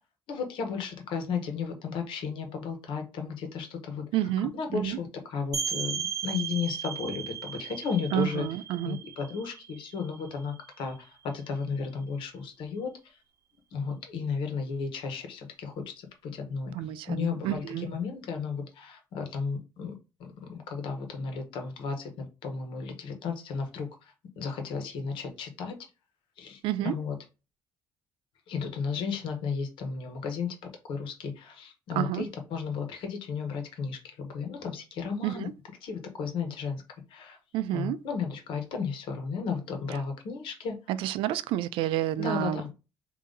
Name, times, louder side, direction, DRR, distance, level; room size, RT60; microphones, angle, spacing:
voice 1, 0.3-4.0 4.5-8.4 8.8-13.2 13.7-16.7 17.1-19.9 20.2-25.8 26.4-27.1 28.5-30.6 30.8-35.5 35.8-36.8 37.1-37.4 37.7-40.8 42.2-42.7, left 5 dB, 75° left, 1.2 m, -34 dB
voice 2, 4.1-5.0 8.1-9.0 16.7-17.9 26.6-27.0 31.9-32.3 35.2-35.5 37.5-38.0 40.9-42.6, right 12 dB, 85° right, 0.4 m, -29 dB
sound 1, 5.5-11.0, right 8 dB, 40° right, 0.9 m, -36 dB
4.0 x 2.7 x 3.8 m
cardioid pair, 110°, 9 cm